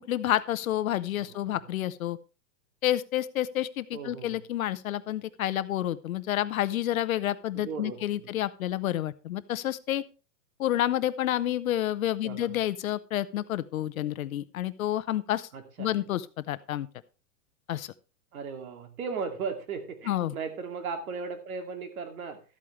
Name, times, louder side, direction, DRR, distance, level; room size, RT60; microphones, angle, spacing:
voice 1, 0.0-2.2 2.8-10.0 10.6-15.5 15.8-16.9 17.7-17.9 20.1-20.3, left 13 dB, 60° left, 15 dB, 0.8 m, -29 dB
voice 2, 1.1-1.6 3.9-4.4 7.5-8.3 12.2-12.6 15.5-15.9 18.3-22.4, right 5 dB, 65° right, 7 dB, 2.5 m, -37 dB
13.0 x 8.7 x 3.2 m, 0.32 s
hypercardioid pair, 170°, 46 cm